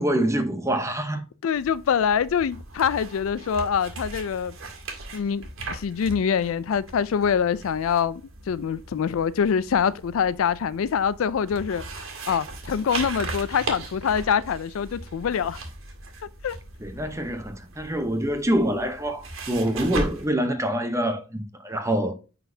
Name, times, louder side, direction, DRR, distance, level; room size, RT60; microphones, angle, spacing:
voice 1, 0.0-1.3 16.8-22.1, right 1 dB, 15° right, 0.8 m, -25 dB
voice 2, 1.4-4.5 5.1-8.2 8.5-11.8 12.3-15.6 16.4-16.6, left 7 dB, 75° left, 0.4 m, -25 dB
sound 1, 1.5-20.3, right 2 dB, 70° right, 1.8 m, -38 dB
9.7 x 4.1 x 2.7 m
head